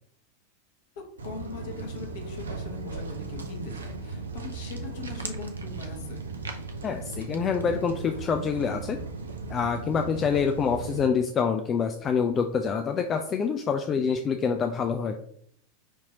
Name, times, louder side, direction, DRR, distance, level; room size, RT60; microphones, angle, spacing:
voice 1, 0.9-6.3, left 4 dB, 55° left, 1 dB, 1.2 m, -41 dB
Walk footsteps, 1.2-11.1, right 3 dB, 75° right, 0.5 m, -37 dB
voice 2, 6.8-9.0 9.5-15.2, left 6 dB, 30° left, 5 dB, 0.3 m, -26 dB
5.1 x 2.8 x 2.8 m, 0.65 s
figure-of-eight pair, 85°, 0 cm